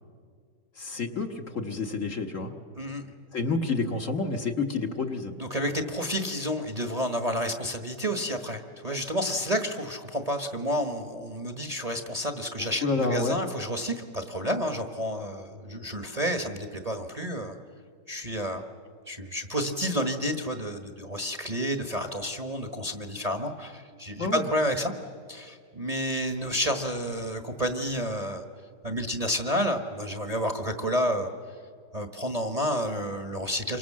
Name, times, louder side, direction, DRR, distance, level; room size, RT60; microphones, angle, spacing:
voice 1, 0.8-2.5 3.3-5.3 12.8-13.4 24.2-24.4, left 3 dB, 50° left, 3 dB, 1.8 m, -29 dB
voice 2, 2.8-3.1 5.4-17.5 18.1-18.6 19.1-24.9 25.3-28.4 28.8-31.3 31.9-33.8, equal, 25° right, 5 dB, 1.3 m, -30 dB
28.0 x 24.5 x 7.5 m, 2.1 s
omnidirectional pair, 1.9 m